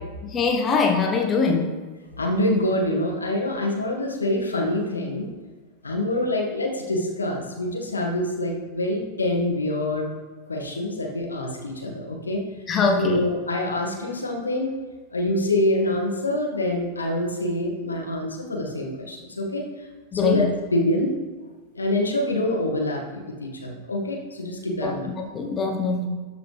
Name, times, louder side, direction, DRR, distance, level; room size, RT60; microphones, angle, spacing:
voice 1, 0.2-1.8 12.7-13.2 20.1-20.5 24.8-26.1, left 4 dB, 25° left, 2 dB, 1.0 m, -23 dB
voice 2, 2.2-5.3 5.8-10.1 10.5-12.4 13.0-14.7 15.1-19.7 20.2-21.1 21.7-25.1, left 1 dB, 75° left, 0 dB, 1.6 m, -25 dB
12.5 x 6.0 x 3.3 m, 1.3 s
figure-of-eight pair, 90°, 0 cm